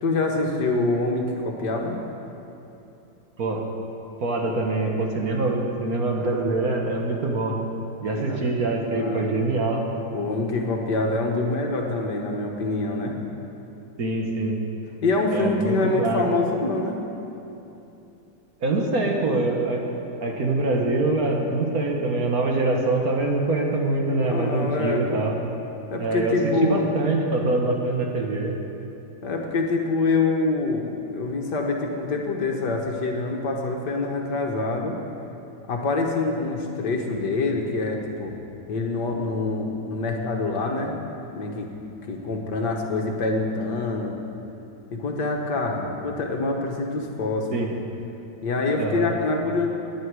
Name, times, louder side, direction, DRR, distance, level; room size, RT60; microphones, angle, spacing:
voice 1, 0.0-2.0 8.1-8.4 8.9-9.3 10.1-13.2 15.0-17.0 24.2-25.2 25.9-26.9 29.2-35.0 35.7-38.3 38.7-41.0 41.3-41.7 42.1-44.2 44.9-47.7 48.4-49.7, left 3 dB, 65° left, 1 dB, 1.8 m, -25 dB
voice 2, 4.2-7.6 8.0-9.8 14.0-14.5 15.3-16.3 18.6-19.8 20.2-25.3 26.0-28.5 47.5-47.7 48.8-49.1, right 2 dB, 55° right, 1 dB, 1.7 m, -24 dB
18.0 x 10.0 x 4.8 m, 2.9 s
omnidirectional pair, 2.1 m